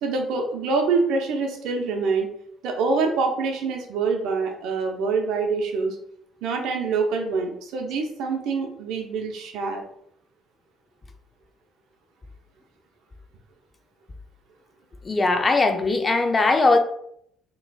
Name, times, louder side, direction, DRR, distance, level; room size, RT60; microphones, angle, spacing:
voice 1, 0.0-2.3 2.6-6.0 6.4-9.8, right 4 dB, 80° right, 3 dB, 0.7 m, -25 dB
voice 2, 15.0-16.8, left 3 dB, 30° left, 6 dB, 0.5 m, -20 dB
4.0 x 3.0 x 2.3 m, 0.68 s
supercardioid pair, 80°, 0 cm